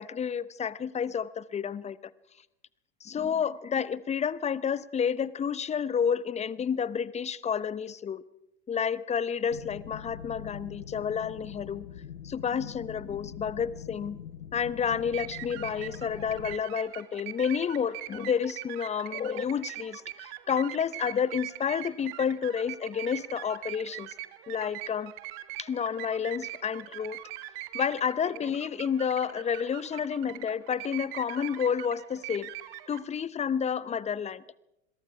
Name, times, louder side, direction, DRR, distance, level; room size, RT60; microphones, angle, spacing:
voice 1, 0.0-2.0 3.0-8.2 8.7-11.9 12.2-14.2 14.5-24.1 24.5-25.1 25.6-27.2 27.7-32.5 32.9-34.4, left 7 dB, 20° left, 18 dB, 0.8 m, -30 dB
sound 1, 9.5-16.6, left 8 dB, 80° left, 1.1 m, -44 dB
sound 2, 14.9-33.0, right 17 dB, 55° right, 1.5 m, -42 dB
27.5 x 22.0 x 4.8 m, 0.89 s
figure-of-eight pair, 85°, 37 cm